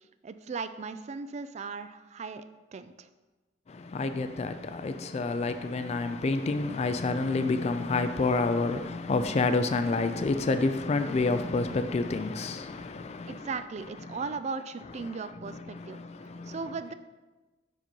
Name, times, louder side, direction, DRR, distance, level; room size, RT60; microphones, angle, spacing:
voice 1, 0.2-2.5 2.7-3.1 13.3-16.0 16.5-16.9, right 4 dB, 40° right, 0.3 m, -37 dB
voice 2, 3.7-13.5 14.1-14.2 15.0-16.6, left 3 dB, 35° left, 0.3 m, -29 dB
5.2 x 5.1 x 5.4 m
head